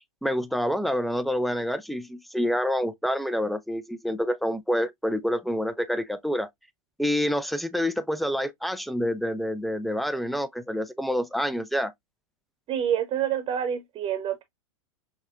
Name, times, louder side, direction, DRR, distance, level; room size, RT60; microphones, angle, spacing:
voice 1, 0.2-6.5 7.0-11.9, equal, ahead, 0.3 m, -27 dB
voice 2, 12.7-14.4, right 9 dB, 35° right, 0.9 m, -27 dB
6.2 x 2.2 x 2.3 m
hypercardioid pair, 100°, 17 cm